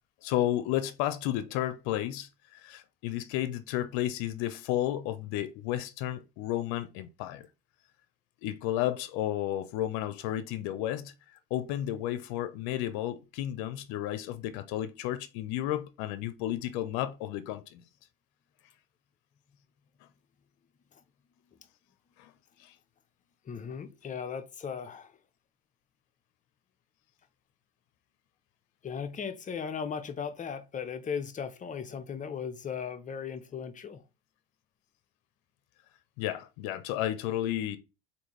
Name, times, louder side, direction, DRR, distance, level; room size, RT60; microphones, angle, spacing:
voice 1, 0.2-7.5 8.4-11.1 11.5-17.8 22.2-22.3 22.6-22.7 36.2-37.8, left 13 dB, 75° left, 0.5 m, -32 dB
voice 2, 23.4-25.2 28.8-34.0, left 6 dB, 25° left, 0.6 m, -37 dB
3.5 x 2.6 x 3.0 m
supercardioid pair, 90°, 30 cm